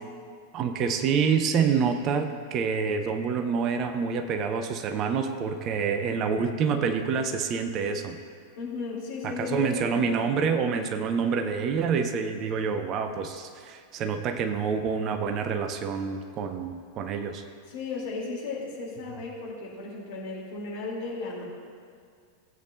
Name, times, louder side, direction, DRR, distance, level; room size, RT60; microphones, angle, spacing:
voice 1, 0.5-8.2 9.2-17.4, right 6 dB, 35° right, 6 dB, 0.6 m, -27 dB
voice 2, 8.6-10.3 17.7-21.4, left 3 dB, 50° left, -4 dB, 2.8 m, -35 dB
16.0 x 8.3 x 2.5 m, 2.1 s
figure-of-eight pair, 90°, 0 cm